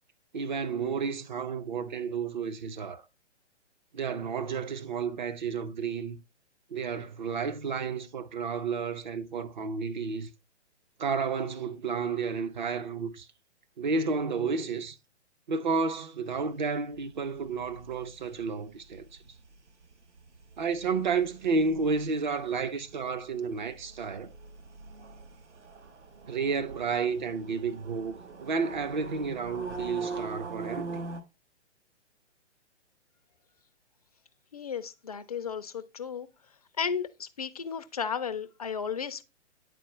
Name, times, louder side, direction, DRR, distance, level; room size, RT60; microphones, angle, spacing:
voice 1, 0.3-3.0 3.9-6.2 6.7-10.3 11.0-13.3 13.8-15.0 15.5-19.1 20.6-24.3 26.3-31.1, right 5 dB, 40° right, 0.6 m, -31 dB
sound 1, 16.3-31.2, right 4 dB, 75° right, 1.0 m, -43 dB
voice 2, 34.5-36.3 36.8-39.2, left 6 dB, 35° left, 0.4 m, -34 dB
9.2 x 4.3 x 3.0 m
figure-of-eight pair, 125°, 36 cm